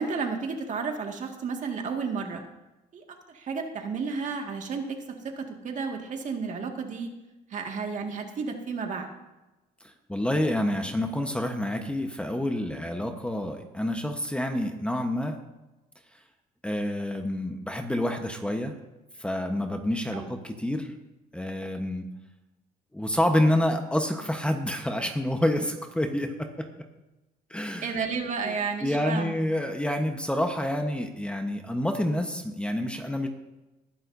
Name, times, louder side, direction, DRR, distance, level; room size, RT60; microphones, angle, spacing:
voice 1, 0.0-2.4 2.9-7.1 7.5-9.1 20.1-20.3 27.8-29.3, right 5 dB, 45° right, 3 dB, 2.0 m, -32 dB
voice 2, 10.1-15.4 16.6-18.7 19.2-20.9 21.3-22.1 22.9-26.7 27.5-27.9 28.4-28.5 28.8-33.3, left 1 dB, 5° left, 4 dB, 1.1 m, -28 dB
20.0 x 11.0 x 2.7 m, 1.0 s
cardioid pair, 110°, 17 cm